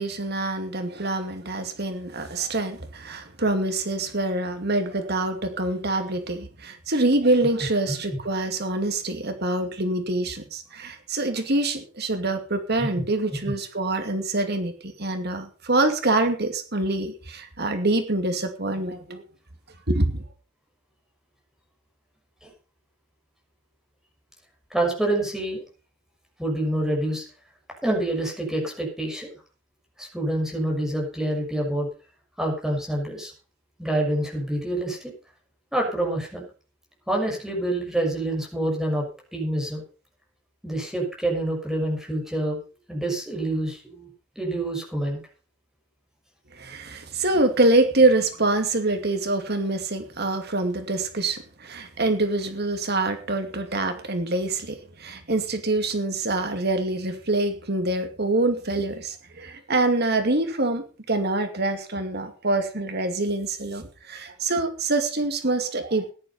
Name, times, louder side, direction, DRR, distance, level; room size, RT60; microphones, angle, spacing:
voice 1, 0.0-19.3 19.9-20.2 46.5-66.1, right 2 dB, 50° right, 7 dB, 2.5 m, -25 dB
voice 2, 24.7-25.6 26.4-27.2 27.8-29.3 30.0-31.9 32.4-33.3 33.8-35.0 35.7-36.4 37.1-39.0 39.3-39.8 40.6-42.6 42.9-44.1 44.4-45.2, right 1 dB, ahead, -1 dB, 6.3 m, -27 dB
15.0 x 11.0 x 5.4 m, 0.36 s
head